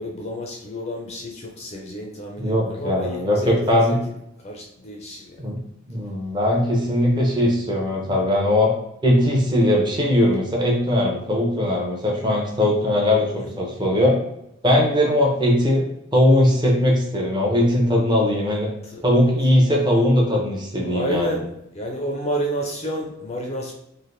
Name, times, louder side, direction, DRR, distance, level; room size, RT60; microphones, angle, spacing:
voice 1, 0.0-4.0 4.4-5.5 13.4-13.5 18.8-19.0 20.8-23.7, equal, 30° left, 0 dB, 0.4 m, -30 dB
voice 2, 2.4-4.0 5.4-5.6 5.9-8.7 9.0-14.2 14.6-15.8 16.1-18.7 19.0-21.3, left 1 dB, 20° right, -1 dB, 0.6 m, -19 dB
3.2 x 2.5 x 2.6 m, 0.80 s
head